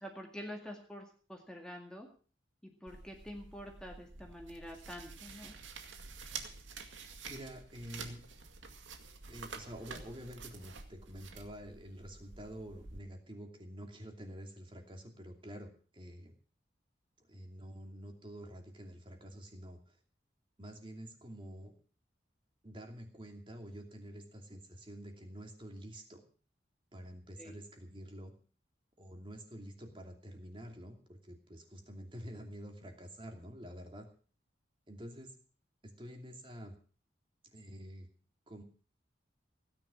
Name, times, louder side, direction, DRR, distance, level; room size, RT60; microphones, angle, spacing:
voice 1, 0.0-2.1 2.6-5.5 27.4-27.6, equal, 5° left, 1 dB, 2.0 m, -47 dB
sound 1, 2.9-13.0, right 5 dB, 85° right, 2.2 m, -49 dB
voice 2, 7.3-8.2 9.3-16.3 17.3-19.9 20.6-21.7 22.6-26.2 26.9-28.3 29.0-34.1 34.9-35.3 36.0-36.8 37.5-38.1 38.5-38.6, equal, 25° right, 3 dB, 2.7 m, -48 dB
16.5 x 10.0 x 6.3 m, 0.41 s
head